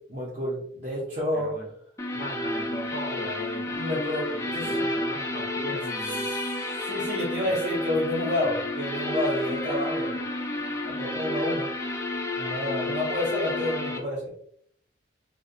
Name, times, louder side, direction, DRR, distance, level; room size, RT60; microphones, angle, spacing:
voice 1, 0.1-1.6 3.7-4.8 5.7-5.8 6.1-6.5 6.8-10.2 10.8-11.7 12.4-14.3, left 1 dB, 40° right, -6 dB, 0.5 m, -30 dB
voice 2, 1.3-1.7 2.1-3.8 4.3-6.3 7.4-7.5 8.4-8.6, equal, 50° left, 1 dB, 0.6 m, -38 dB
sound 1, 2.0-14.0, left 1 dB, 15° left, 0.3 m, -31 dB
2.5 x 2.2 x 2.4 m, 0.66 s
head